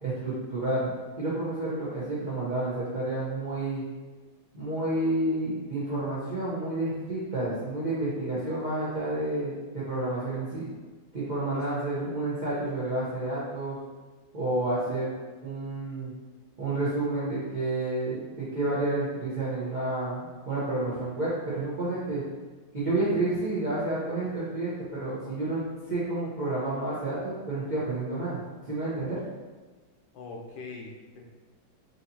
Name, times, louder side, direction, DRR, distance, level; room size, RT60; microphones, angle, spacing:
voice 1, 0.0-0.9 1.2-3.8 4.5-10.7 11.1-13.8 14.3-15.1 15.4-16.1 16.6-22.2 22.7-25.6 25.9-28.4 28.6-29.2, right 2 dB, 90° right, -10 dB, 0.4 m, -30 dB
voice 2, 30.1-31.2, left 3 dB, 75° left, 0 dB, 1.2 m, -42 dB
4.8 x 2.7 x 2.7 m, 1.3 s
omnidirectional pair, 2.3 m